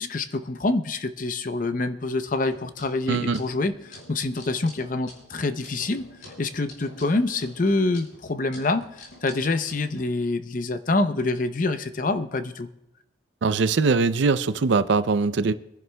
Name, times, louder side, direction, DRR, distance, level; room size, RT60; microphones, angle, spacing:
voice 1, 0.0-6.0 6.4-12.7, left 2 dB, 40° left, 0.6 m, -26 dB
sound 1, 2.4-10.0, left 1 dB, 90° left, 5.6 m, -48 dB
voice 2, 3.1-3.4 13.4-15.5, right 4 dB, 65° right, 0.5 m, -22 dB
25.5 x 10.5 x 2.2 m
head